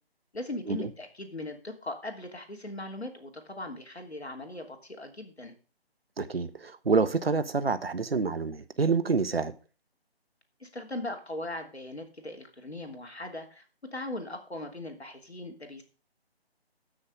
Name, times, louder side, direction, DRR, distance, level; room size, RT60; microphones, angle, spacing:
voice 1, 0.3-5.5 10.6-13.6 13.9-15.8, left 1 dB, 80° left, 3.1 m, -39 dB
voice 2, 6.2-9.5, right 4 dB, 65° right, 1.2 m, -27 dB
13.5 x 6.6 x 5.2 m
figure-of-eight pair, 150°, 31 cm